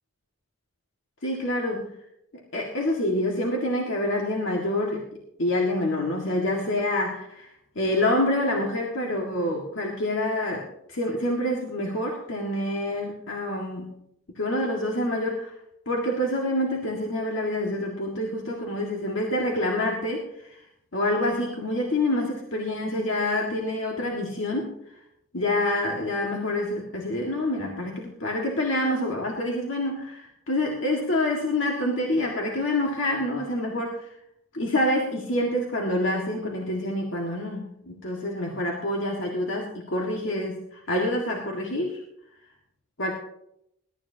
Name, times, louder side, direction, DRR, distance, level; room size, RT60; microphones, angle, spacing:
voice 1, 1.2-1.9 2.5-5.1 5.4-13.9 14.4-15.5 15.9-20.5 20.9-24.7 25.3-34.1 34.5-42.0 43.0-43.1, left 1 dB, 70° left, -1 dB, 1.9 m, -27 dB
21.5 x 12.5 x 2.8 m, 0.77 s
head